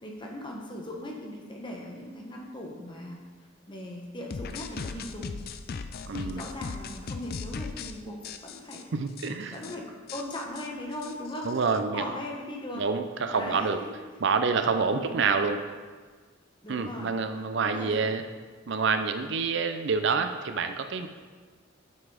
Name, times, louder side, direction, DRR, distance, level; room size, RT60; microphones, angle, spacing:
voice 1, 0.0-3.2 3.7-5.3 6.1-8.2 8.4-8.8 9.5-11.5 11.8-12.8 13.3-13.9 14.9-15.2 16.6-17.1 17.6-18.1, left 1 dB, 25° left, -1 dB, 1.3 m, -39 dB
sound 1, 4.3-7.9 8.2-8.8 9.2-9.3 9.5-9.8 10.1-11.8, left 5 dB, 50° left, 0.4 m, -38 dB
voice 2, 6.1-6.4 8.9-9.6 11.5-12.1 12.8-13.8 14.2-15.6 16.7-18.2 18.7-21.1, right 5 dB, 65° right, 8 dB, 0.5 m, -27 dB
7.5 x 5.9 x 4.9 m, 1.4 s
head